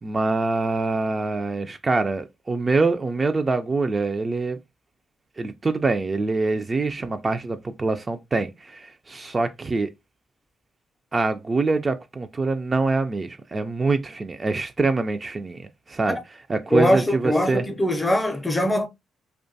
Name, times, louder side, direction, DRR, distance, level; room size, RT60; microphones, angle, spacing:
voice 1, 0.0-4.6 5.4-9.9 11.1-16.2 16.5-17.6, right 3 dB, 35° right, 0.3 m, -24 dB
voice 2, 16.7-18.9, left 1 dB, 15° left, 0.5 m, -22 dB
2.4 x 2.2 x 2.6 m
supercardioid pair, 50°, 0 cm